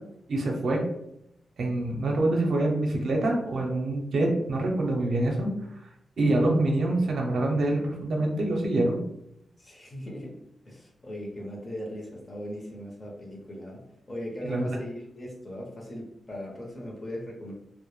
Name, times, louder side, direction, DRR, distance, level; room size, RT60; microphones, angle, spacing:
voice 1, 0.3-0.8 1.6-5.5 6.2-9.0 14.4-14.8, right 2 dB, 65° right, 0 dB, 0.5 m, -25 dB
voice 2, 9.6-10.4 10.6-17.5, equal, 30° left, -2 dB, 0.6 m, -38 dB
2.1 x 2.1 x 3.0 m, 0.80 s
wide cardioid pair, 125°, 0 cm